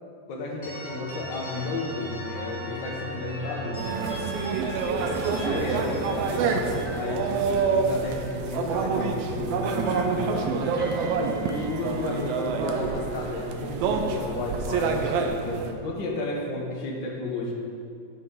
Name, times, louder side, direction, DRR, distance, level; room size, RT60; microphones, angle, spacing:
voice 1, 0.3-4.0 5.2-10.6 11.5-17.5, left 2 dB, 75° left, -1 dB, 1.0 m, -32 dB
sound 1, 0.6-9.3 9.6-13.7, equal, 30° left, 1.6 m, -39 dB
sound 2, 3.8-15.7, right 5 dB, 85° right, 1.3 m, -27 dB
10.5 x 6.6 x 3.8 m, 2.4 s
omnidirectional pair, 3.5 m